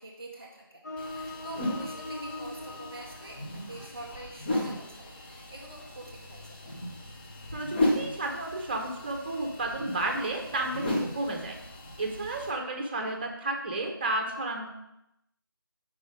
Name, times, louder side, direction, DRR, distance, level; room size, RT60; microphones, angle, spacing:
voice 1, 0.0-6.7 12.6-12.9, right 2 dB, 10° right, -9 dB, 0.3 m, -46 dB
sound 1, 0.8-10.9, left 2 dB, 50° left, 1.1 m, -45 dB
sound 2, 1.0-12.5, left 1 dB, 25° left, 0.9 m, -35 dB
voice 2, 7.5-11.6 12.0-14.7, right 2 dB, 25° right, 3 dB, 0.8 m, -32 dB
5.3 x 4.9 x 5.0 m, 0.85 s
figure-of-eight pair, 160°, 12 cm